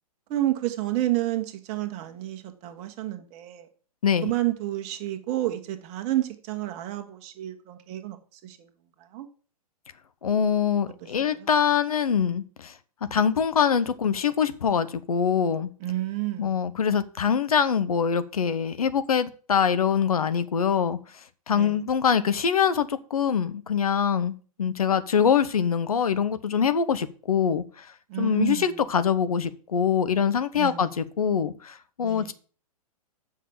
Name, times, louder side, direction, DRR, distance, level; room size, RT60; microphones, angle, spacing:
voice 1, 0.3-3.7 4.2-8.7 9.1-9.3 11.4-11.5 15.8-16.6 21.5-21.8 28.1-28.7 30.5-30.9 32.0-32.3, right 15 dB, 35° right, 1.4 m, -30 dB
voice 2, 10.2-12.7 13.1-15.7 16.4-32.3, left 7 dB, 70° left, 0.9 m, -24 dB
7.3 x 5.8 x 7.4 m
figure-of-eight pair, 110°, 20 cm